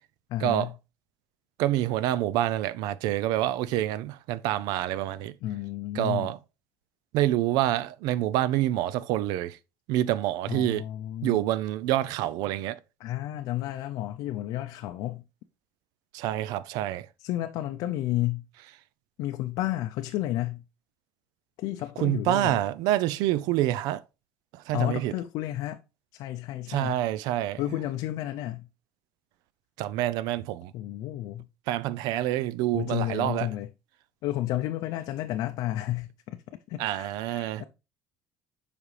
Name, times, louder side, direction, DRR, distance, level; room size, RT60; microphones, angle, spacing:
voice 1, 0.3-0.7 5.4-6.3 10.5-11.4 13.0-15.2 17.2-18.4 19.2-20.6 21.6-22.6 24.7-25.8 26.1-27.0 27.6-28.7 30.7-31.5 32.7-33.7 34.2-36.4 36.7-37.6, left 14 dB, 65° left, 0.5 m, -31 dB
voice 2, 1.6-5.3 5.9-6.4 7.1-9.6 9.9-10.9 11.2-12.8 16.1-17.1 22.0-24.0 24.7-25.1 26.7-27.6 29.8-30.7 31.7-33.5 36.8-37.6, right 14 dB, 80° right, 0.4 m, -27 dB
7.3 x 5.0 x 3.2 m
cardioid pair, 140°, 7 cm